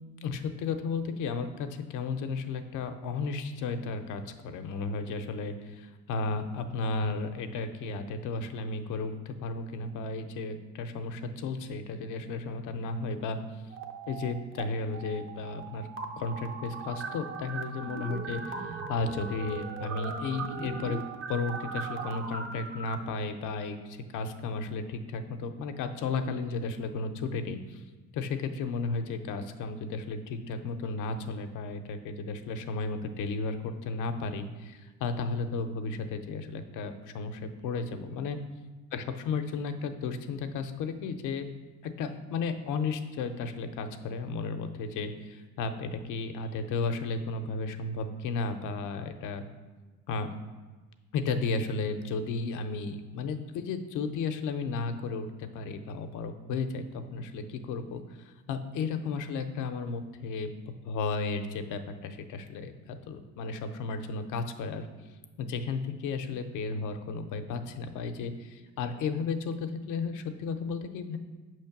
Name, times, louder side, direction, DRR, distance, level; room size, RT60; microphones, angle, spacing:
voice 1, 0.2-13.4 14.1-15.9 16.2-27.8 28.1-38.4 38.9-41.5 41.8-49.4 50.1-50.3 51.1-60.5 60.8-64.9 65.4-71.2, left 4 dB, 85° left, 7 dB, 0.6 m, -34 dB
sound 1, 13.7-14.7 14.9-22.9, right 5 dB, 45° right, 0.6 m, -39 dB
6.4 x 3.1 x 5.8 m, 1.3 s
cardioid pair, 90°, 30 cm